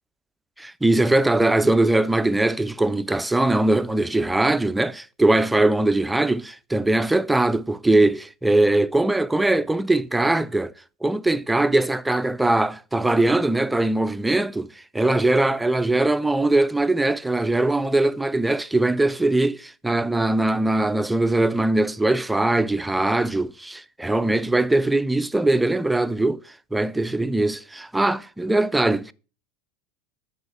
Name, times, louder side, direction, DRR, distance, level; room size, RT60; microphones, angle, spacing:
voice 1, 0.6-10.7 11.0-26.4 26.7-29.1, right 2 dB, 5° right, 0.4 m, -21 dB
9.5 x 4.9 x 5.5 m
hypercardioid pair, 100°, 0 cm